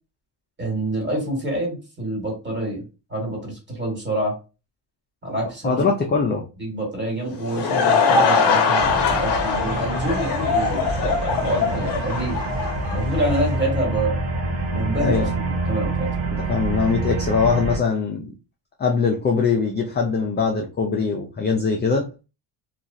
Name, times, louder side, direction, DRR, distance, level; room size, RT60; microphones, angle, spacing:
voice 1, 0.6-2.8 3.1-4.3 5.2-5.8 6.6-12.4 12.9-14.2 14.7-16.1, right 1 dB, 25° right, 1.5 m, -27 dB
voice 2, 5.6-6.4 15.0-15.3 16.3-18.3 18.8-22.2, left 5 dB, 25° left, 0.3 m, -22 dB
Laughter / Crowd, 7.2-13.6, left 5 dB, 55° left, 0.7 m, -22 dB
sound 1, 8.8-17.8, right 2 dB, 75° right, 1.3 m, -27 dB
3.0 x 2.3 x 2.5 m
cardioid pair, 125°, 47 cm